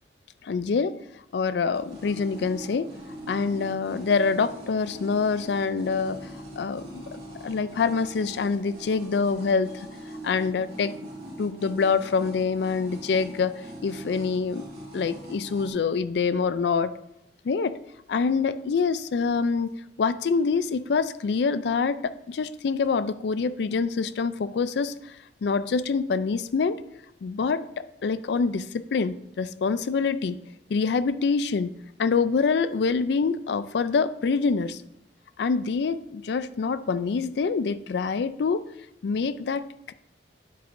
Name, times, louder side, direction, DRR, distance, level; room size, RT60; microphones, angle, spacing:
voice 1, 0.4-1.0 1.3-2.9 3.3-6.3 6.6-9.9 10.2-10.9 11.4-14.7 14.9-17.0 17.4-17.8 18.1-25.2 25.4-26.8 27.2-30.4 30.7-31.7 32.0-34.8 35.4-38.6 39.0-39.9, left 5 dB, 70° left, 14 dB, 0.4 m, -26 dB
sound 1, 1.7-15.7, right 1 dB, 40° right, 3.3 m, -42 dB
9.8 x 7.8 x 2.6 m, 0.82 s
head